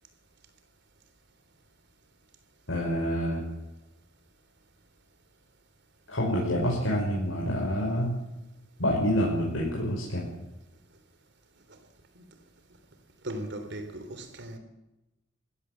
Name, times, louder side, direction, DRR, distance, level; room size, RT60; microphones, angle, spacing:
voice 1, 2.7-3.4 6.1-8.1 8.8-10.3, equal, 75° left, 5.7 m, -27 dB
voice 2, 13.2-14.6, right 1 dB, 60° right, 3.5 m, -37 dB
22.5 x 16.5 x 7.6 m
head